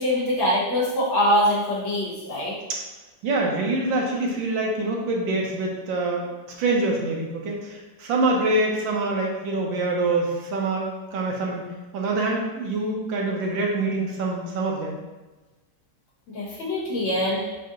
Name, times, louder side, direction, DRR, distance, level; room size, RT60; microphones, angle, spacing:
voice 1, 0.0-2.6 16.3-17.4, equal, 80° left, -6 dB, 2.0 m, -23 dB
voice 2, 3.2-6.3 6.6-11.6 11.9-15.0, right 2 dB, 75° right, -1 dB, 1.5 m, -25 dB
7.4 x 2.8 x 2.5 m, 1.2 s
omnidirectional pair, 2.1 m